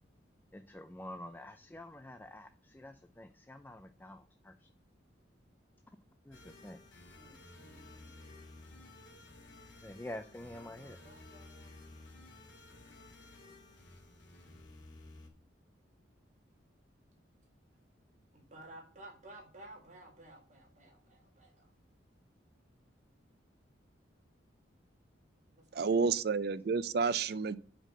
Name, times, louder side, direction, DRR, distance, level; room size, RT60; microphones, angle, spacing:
voice 1, 0.5-4.7 6.2-6.8 9.8-11.0, left 1 dB, 10° left, 0.3 m, -48 dB
sound 1, 6.3-15.3, left 2 dB, 85° left, 2.4 m, -54 dB
voice 2, 7.1-8.3 10.4-11.8 18.3-21.7 25.5-26.3, right 1 dB, 40° right, 1.7 m, -55 dB
voice 3, 25.7-27.6, right 5 dB, 55° right, 0.4 m, -30 dB
5.7 x 5.1 x 6.4 m
head